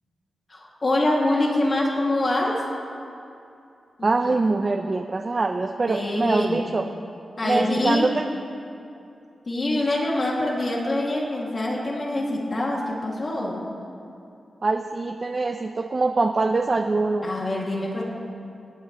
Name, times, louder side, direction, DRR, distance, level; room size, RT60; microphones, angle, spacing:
voice 1, 0.5-2.6 4.0-4.1 5.9-6.7 7.4-8.1 9.5-13.6 17.2-18.0, left 1 dB, 40° left, -3 dB, 2.3 m, -25 dB
voice 2, 4.0-6.9 7.4-8.3 14.6-17.3, right 3 dB, 40° right, 4 dB, 0.6 m, -24 dB
27.5 x 9.3 x 3.1 m, 2.6 s
wide cardioid pair, 90°, 0 cm